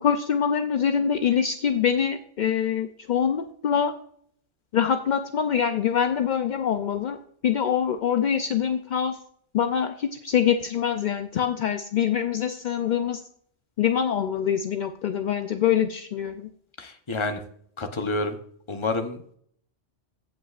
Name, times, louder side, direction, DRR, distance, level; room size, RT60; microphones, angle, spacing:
voice 1, 0.0-3.9 4.7-7.2 7.4-9.2 9.5-13.2 13.8-16.5, left 8 dB, 60° left, 7 dB, 0.5 m, -24 dB
voice 2, 16.8-17.4 17.8-18.4 18.7-19.4, left 2 dB, 25° left, 6 dB, 0.8 m, -29 dB
15.5 x 5.6 x 2.4 m, 0.63 s
omnidirectional pair, 1.2 m